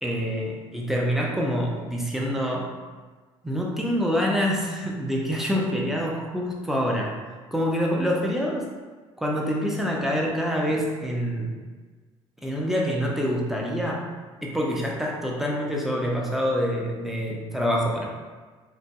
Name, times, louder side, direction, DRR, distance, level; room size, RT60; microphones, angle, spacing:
voice 1, 0.0-2.7 3.4-7.1 7.5-8.7 9.2-11.5 12.4-14.0 14.4-18.1, equal, ahead, -2 dB, 0.6 m, -26 dB
3.0 x 2.5 x 2.3 m, 1.4 s
hypercardioid pair, 55°, 15 cm